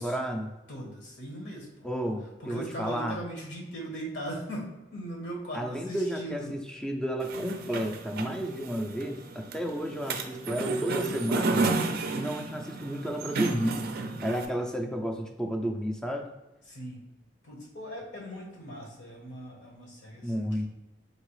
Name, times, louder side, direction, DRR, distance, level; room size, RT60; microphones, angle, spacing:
voice 1, 0.0-0.5 1.8-3.2 5.5-11.7 12.1-13.8 14.2-16.3 20.2-20.7, equal, 5° left, 2 dB, 0.4 m, -32 dB
voice 2, 0.7-1.7 2.4-6.6 16.7-17.0 17.4-20.7, right 1 dB, 70° left, -1 dB, 1.2 m, -39 dB
sound 1, 7.2-14.5, right 3 dB, 55° right, 0.4 m, -32 dB
4.6 x 2.9 x 3.2 m, 1.0 s
head